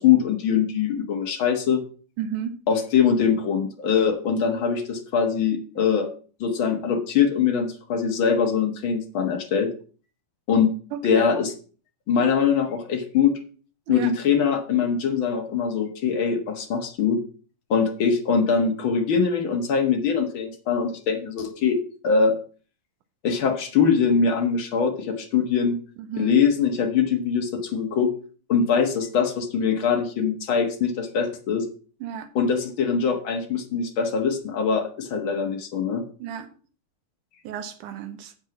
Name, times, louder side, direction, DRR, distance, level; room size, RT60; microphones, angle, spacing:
voice 1, 0.0-1.8 2.7-6.1 6.4-9.7 10.5-10.7 11.0-11.5 12.1-13.3 13.9-17.2 17.7-21.8 22.0-22.3 23.2-25.8 26.1-28.1 28.5-31.6 32.3-36.0, left 6 dB, 55° left, 4 dB, 1.5 m, -22 dB
voice 2, 2.2-2.5 10.9-11.4 13.9-14.1 26.0-26.4 32.0-32.3 36.2-36.5 37.4-38.3, right 8 dB, 75° right, 9 dB, 2.3 m, -32 dB
7.9 x 6.6 x 5.9 m, 0.40 s
omnidirectional pair, 3.9 m